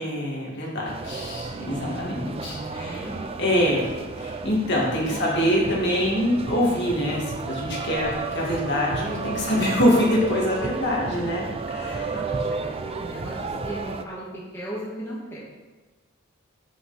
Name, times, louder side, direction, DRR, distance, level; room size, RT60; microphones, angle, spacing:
voice 1, 0.0-3.0 3.4-3.9 4.2-12.1, equal, 55° left, -4 dB, 2.2 m, -24 dB
sound 1, 0.8-14.0, right 3 dB, 25° right, 0.4 m, -32 dB
voice 2, 1.6-3.2 5.1-5.2 10.9-11.4 11.8-14.3 14.5-15.4, right 1 dB, 10° left, -7 dB, 1.6 m, -37 dB
7.8 x 7.5 x 4.2 m, 1.3 s
head